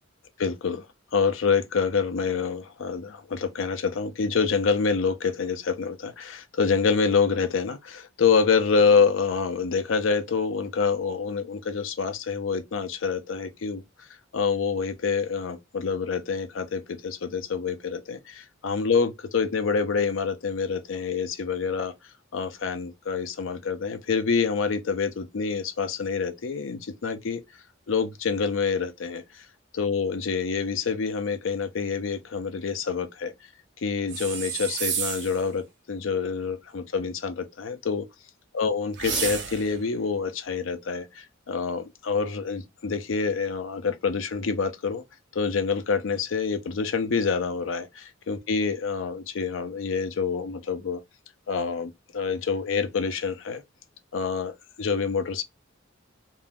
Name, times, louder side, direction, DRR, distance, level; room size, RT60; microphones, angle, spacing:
voice 1, 0.4-0.9 1.1-13.8 14.3-21.9 22.3-27.4 27.9-29.5 29.7-33.3 33.8-38.0 38.5-45.0 45.3-51.0 51.5-53.6 54.1-55.4, left 5 dB, 70° left, 0.5 m, -27 dB
sound 1, 34.1-35.4 38.9-39.8, right 7 dB, 60° right, 0.6 m, -30 dB
2.5 x 2.3 x 3.3 m
head